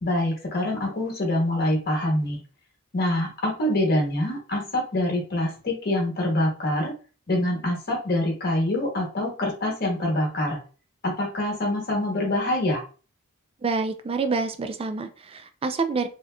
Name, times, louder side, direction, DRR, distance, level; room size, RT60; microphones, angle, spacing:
voice 1, 0.0-2.4 2.9-6.9 7.3-10.6 11.0-12.8, left 1 dB, 45° left, -1 dB, 1.2 m, -25 dB
voice 2, 13.6-16.1, right 4 dB, 25° right, 9 dB, 0.3 m, -27 dB
3.5 x 2.8 x 2.2 m, 0.37 s
head